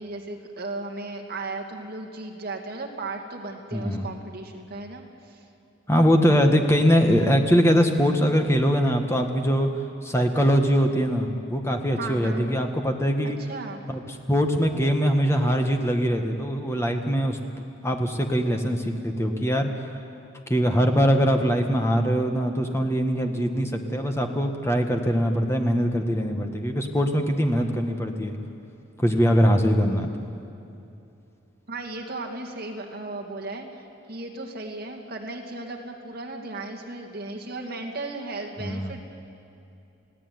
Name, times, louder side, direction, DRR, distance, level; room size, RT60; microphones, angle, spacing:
voice 1, 0.0-5.4 12.0-12.5 13.2-13.8 31.7-39.0, right 2 dB, 45° right, 1 dB, 2.6 m, -36 dB
voice 2, 3.7-4.1 5.9-9.7 10.0-13.4 13.9-14.0 14.3-17.4 17.8-19.7 20.5-28.3 29.0-30.3 38.6-39.0, equal, 15° left, 4 dB, 1.6 m, -22 dB
29.5 x 16.5 x 9.7 m, 2.7 s
head